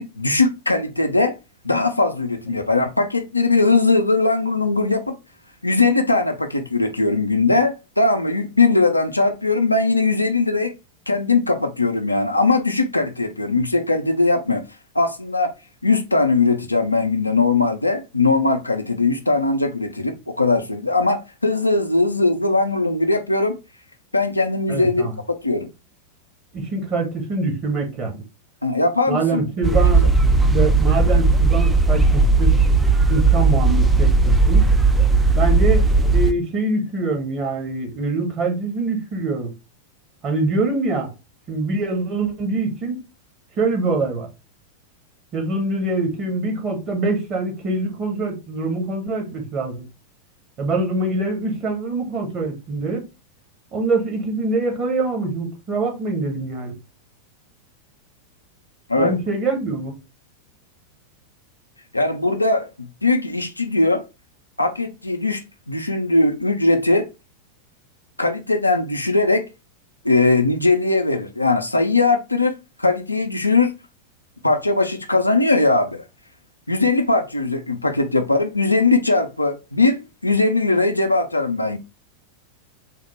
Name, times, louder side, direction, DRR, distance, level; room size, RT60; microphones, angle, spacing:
voice 1, 0.0-1.4 1.6-5.2 5.6-10.7 11.1-14.6 14.9-15.5 15.8-23.6 24.1-25.1 25.4-25.7 28.6-29.5 58.9-59.2 61.9-64.0 64.6-65.4 65.7-67.1 68.2-69.5 70.0-73.7 74.4-76.0 76.7-81.8, left 3 dB, 85° left, 0.4 m, -20 dB
voice 2, 24.7-25.1 26.5-28.2 29.1-30.0 30.5-32.6 33.1-34.7 35.3-39.5 40.2-41.1 41.5-43.0 43.6-44.3 45.3-49.8 50.6-53.0 53.7-56.8 58.9-59.9, right 3 dB, 30° right, 1.2 m, -24 dB
sound 1, 29.6-36.3, right 3 dB, 10° right, 0.3 m, -16 dB
3.5 x 2.1 x 3.1 m
figure-of-eight pair, 90°, 0 cm